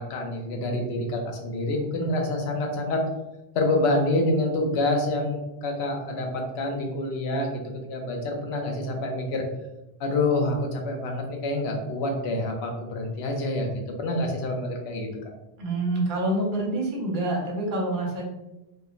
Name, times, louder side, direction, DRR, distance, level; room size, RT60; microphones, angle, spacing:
voice 1, 0.0-3.0 3.5-9.4 10.0-13.7 14.0-15.1, left 2 dB, 75° left, 2 dB, 0.8 m, -27 dB
voice 2, 15.6-18.3, right 1 dB, 55° right, -2 dB, 0.8 m, -27 dB
3.0 x 2.2 x 2.4 m, 0.95 s
omnidirectional pair, 1.1 m